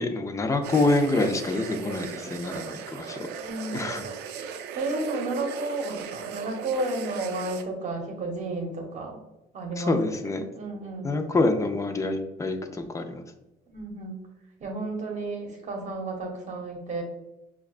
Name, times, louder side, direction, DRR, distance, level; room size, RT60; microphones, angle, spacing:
voice 1, 0.0-3.3 3.7-4.1 9.8-10.4 11.0-13.2, left 2 dB, 20° left, 6 dB, 0.4 m, -26 dB
sound 1, 0.6-7.6, right 7 dB, 85° right, 0.4 m, -38 dB
voice 2, 3.3-3.8 4.7-9.2 9.5-11.2 13.7-14.3 14.6-17.0, right 2 dB, 45° right, 2 dB, 1.0 m, -32 dB
5.8 x 2.3 x 2.4 m, 0.93 s
cardioid pair, 110°, 17 cm